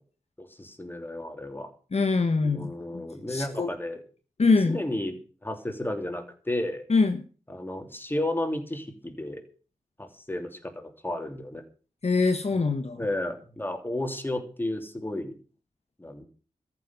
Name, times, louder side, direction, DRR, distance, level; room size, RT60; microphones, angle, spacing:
voice 1, 0.4-1.7 2.4-4.0 4.7-6.8 7.5-9.4 10.0-11.6 12.5-12.7 13.0-15.3 16.0-16.2, left 1 dB, 15° left, 5 dB, 3.1 m, -33 dB
voice 2, 1.9-3.0 3.3-3.7 4.4-4.8 6.9-7.2 12.0-13.0, left 4 dB, 55° left, 7 dB, 1.4 m, -24 dB
14.0 x 6.9 x 9.6 m, 0.39 s
wide cardioid pair, 95°, 13 cm